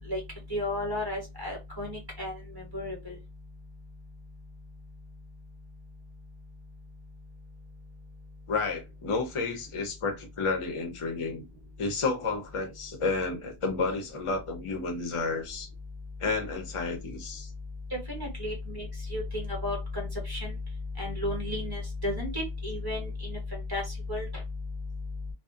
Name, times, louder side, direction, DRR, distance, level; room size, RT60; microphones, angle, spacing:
voice 1, 0.5-3.2 17.9-20.5 21.0-23.8 24.1-24.3, left 1 dB, 20° right, 0.9 m, -33 dB
voice 2, 8.5-11.4 11.8-15.7 16.2-17.5, left 4 dB, 35° left, 0.6 m, -31 dB
2.6 x 2.0 x 2.4 m
omnidirectional pair, 1.1 m